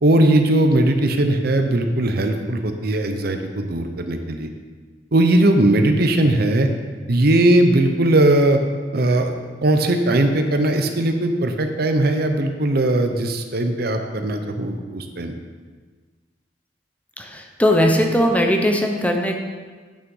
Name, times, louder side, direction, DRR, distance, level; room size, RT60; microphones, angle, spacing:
voice 1, 0.0-4.5 5.1-6.7 7.1-8.6 8.9-9.3 9.6-15.3, right 1 dB, 60° right, 6 dB, 0.8 m, -19 dB
voice 2, 17.2-19.3, equal, 10° left, 3 dB, 0.8 m, -19 dB
8.8 x 6.5 x 5.5 m, 1.5 s
head